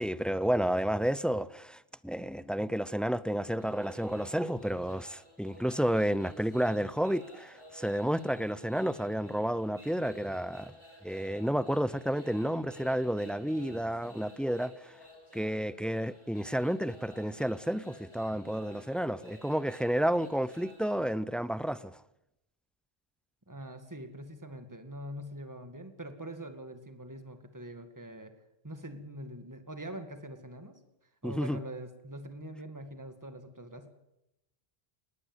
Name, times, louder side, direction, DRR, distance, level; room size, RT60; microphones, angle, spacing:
voice 1, 0.0-10.7 11.0-14.9 15.3-22.0 31.2-31.6, equal, ahead, 0.5 m, -31 dB
sound 1, 3.6-20.9, equal, 30° left, 3.9 m, -54 dB
voice 2, 23.5-28.3 28.6-30.8 31.2-33.9, equal, 20° right, 2.2 m, -43 dB
20.5 x 18.0 x 8.0 m
omnidirectional pair, 1.0 m